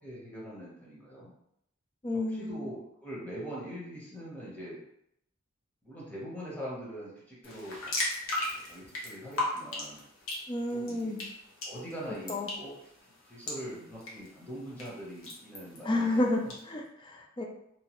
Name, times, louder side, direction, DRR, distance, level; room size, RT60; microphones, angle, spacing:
voice 1, 0.0-1.3 2.1-4.8 5.8-7.9 8.3-10.0 10.7-11.1 11.6-12.7 13.3-16.5, equal, 10° left, -8 dB, 0.9 m, -43 dB
voice 2, 2.0-2.8 10.5-11.2 12.3-12.5 15.8-17.4, left 2 dB, 25° left, 1 dB, 0.4 m, -31 dB
sound 1, 7.4-16.6, left 1 dB, 70° left, 0.8 m, -38 dB
2.9 x 2.3 x 2.9 m, 0.75 s
head